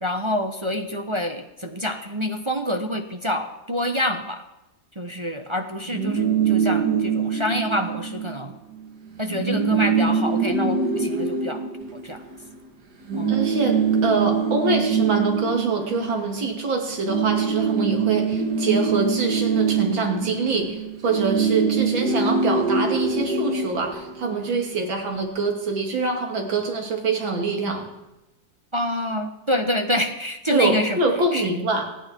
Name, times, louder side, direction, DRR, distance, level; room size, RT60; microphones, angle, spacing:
voice 1, 0.0-4.4 5.0-8.5 9.2-11.6 11.9-12.2 13.1-13.5 28.7-31.0 31.3-31.5, equal, 25° right, 5 dB, 0.6 m, -27 dB
sound 1, 5.9-8.4 8.7-8.9 9.2-12.6 13.1-16.6 16.9-24.5, right 5 dB, 55° right, 2.3 m, -24 dB
voice 2, 13.3-27.8 30.5-31.8, right 3 dB, 80° right, 2 dB, 3.2 m, -25 dB
26.5 x 9.5 x 4.5 m, 0.99 s
omnidirectional pair, 2.1 m